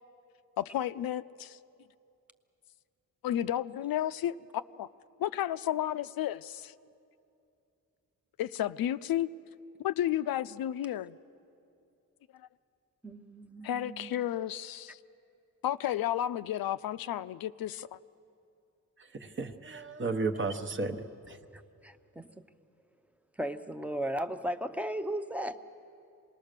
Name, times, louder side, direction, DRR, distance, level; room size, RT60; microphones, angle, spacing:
voice 1, 0.6-1.6 3.2-4.4 4.8-4.9 5.2-6.7 8.4-9.3 9.8-11.2 12.3-12.5 13.6-15.0 15.6-18.0, left 12 dB, 90° left, 13 dB, 0.5 m, -32 dB
voice 2, 13.0-14.1 21.5-22.3 23.4-25.6, right 1 dB, 5° right, 8 dB, 0.7 m, -36 dB
voice 3, 19.0-21.4, right 3 dB, 35° right, 7 dB, 0.9 m, -34 dB
27.5 x 19.5 x 6.7 m, 2.6 s
wide cardioid pair, 145°, 35 cm